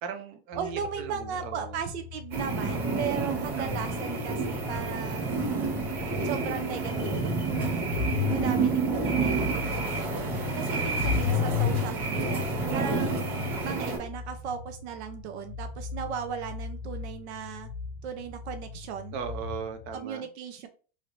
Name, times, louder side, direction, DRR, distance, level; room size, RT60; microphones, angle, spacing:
voice 1, 0.0-1.8 3.1-3.8 9.1-9.8 12.7-13.1 19.1-20.3, right 7 dB, 30° right, 0.4 m, -39 dB
sound 1, 0.5-20.0, left 7 dB, 75° left, 0.6 m, -36 dB
voice 2, 0.5-5.5 6.2-7.3 8.3-10.1 10.3-12.5 12.7-17.7 18.0-19.2 19.9-20.7, right 7 dB, 80° right, 0.6 m, -37 dB
sound 2, 2.3-14.0, right 4 dB, 60° right, 1.6 m, -29 dB
3.1 x 2.8 x 2.5 m
supercardioid pair, 165°, 33 cm